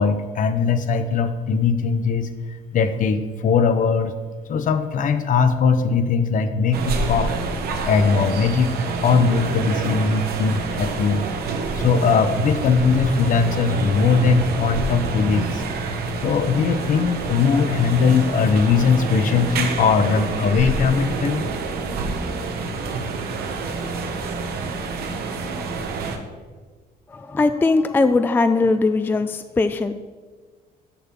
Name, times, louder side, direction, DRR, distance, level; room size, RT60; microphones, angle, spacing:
voice 1, 0.0-2.3 2.7-4.1 4.5-7.3 7.9-8.7 9.0-11.2 11.7-15.6 16.2-21.4, left 5 dB, 50° left, 10 dB, 0.8 m, -20 dB
sound 1, 6.7-26.2, right 3 dB, 70° right, 1.1 m, -27 dB
voice 2, 27.1-29.9, left 3 dB, 10° left, 10 dB, 0.3 m, -20 dB
7.1 x 5.6 x 7.5 m, 1.4 s
cardioid pair, 110°, 17 cm